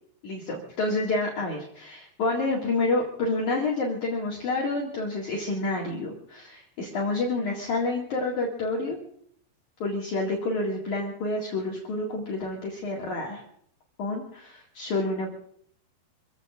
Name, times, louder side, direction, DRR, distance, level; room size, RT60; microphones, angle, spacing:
voice 1, 0.2-9.0 9.8-13.4 14.0-15.3, left 2 dB, 50° left, -3 dB, 3.2 m, -28 dB
26.5 x 16.5 x 2.5 m, 0.64 s
omnidirectional pair, 4.9 m